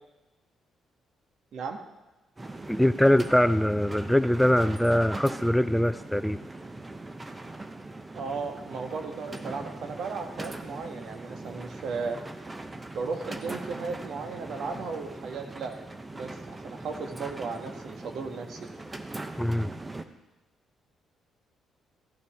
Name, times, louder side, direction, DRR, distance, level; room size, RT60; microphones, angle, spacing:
sound 1, 2.4-20.0, right 2 dB, 20° right, 0.8 m, -41 dB
voice 1, 2.7-6.4 19.4-19.7, left 1 dB, ahead, 12 dB, 0.4 m, -23 dB
voice 2, 8.1-12.2 12.8-15.7 16.1-18.7, right 4 dB, 70° right, 5 dB, 1.4 m, -35 dB
15.0 x 11.5 x 3.5 m, 1.1 s
cardioid pair, 90°, 0 cm